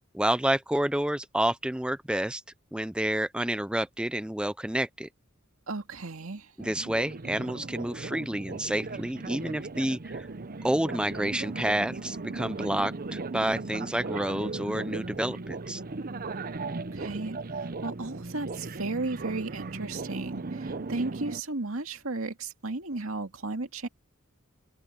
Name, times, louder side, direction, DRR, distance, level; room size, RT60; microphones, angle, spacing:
voice 1, 0.1-2.4 2.7-5.1 6.6-10.3 10.6-15.8, right 1 dB, 5° right, 0.5 m, -29 dB
voice 2, 5.7-6.5 16.7-23.9, right 3 dB, 80° right, 2.3 m, -35 dB
sound 1, 6.6-21.4, right 3 dB, 45° right, 0.8 m, -37 dB
head